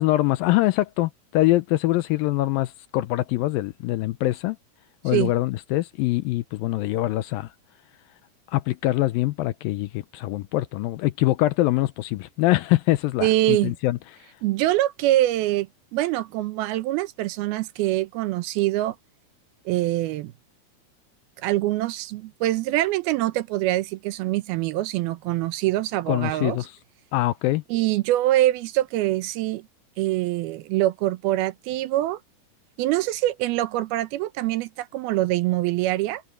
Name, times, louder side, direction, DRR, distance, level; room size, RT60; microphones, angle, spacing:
voice 1, 0.0-4.6 5.0-7.5 8.5-14.0 26.1-26.7 27.1-27.6, left 17 dB, 80° left, 2.2 m, -23 dB
voice 2, 13.2-13.8 14.4-19.0 19.7-20.3 21.4-26.6 27.7-29.7 30.0-32.2 32.8-36.2, right 15 dB, 80° right, 2.7 m, -24 dB
omnidirectional pair, 4.5 m